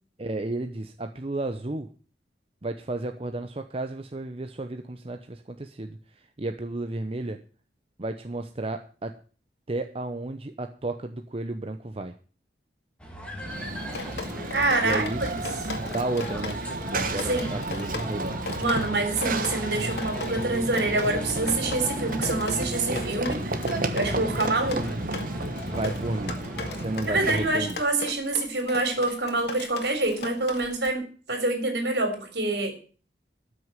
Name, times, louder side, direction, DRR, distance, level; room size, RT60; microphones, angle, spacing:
voice 1, 0.2-1.9 2.6-7.4 8.0-9.2 9.7-12.1 14.8-15.2 15.7-16.6 16.9-18.3 25.7-26.4 26.7-27.8, right 2 dB, 35° right, 7 dB, 0.8 m, -33 dB
sound 1, 13.0-27.3, equal, 5° left, 2.6 m, -41 dB
Run / Train, 13.4-27.9, right 2 dB, 50° right, 1.3 m, -32 dB
Drip, 13.9-30.9, left 3 dB, 70° left, 2.0 m, -38 dB
voice 2, 14.5-15.1 17.3-17.5 18.6-23.5 23.9-25.0 27.1-32.7, right 2 dB, 70° right, 6 dB, 3.8 m, -26 dB
13.0 x 6.5 x 9.1 m, 0.40 s
head